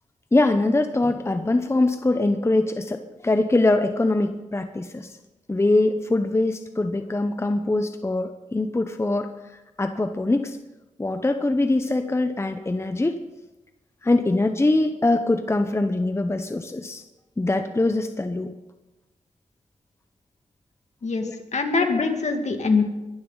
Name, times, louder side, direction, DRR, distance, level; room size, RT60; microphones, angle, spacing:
voice 1, 0.3-5.1 5.5-9.3 9.8-10.6 11.0-13.2 14.0-17.0 17.4-18.5 21.2-21.4, left 2 dB, 20° left, 8 dB, 0.9 m, -23 dB
voice 2, 21.0-22.8, left 4 dB, 60° left, 5 dB, 2.1 m, -23 dB
22.0 x 11.5 x 4.0 m, 1.0 s
cardioid pair, 75°, 13 cm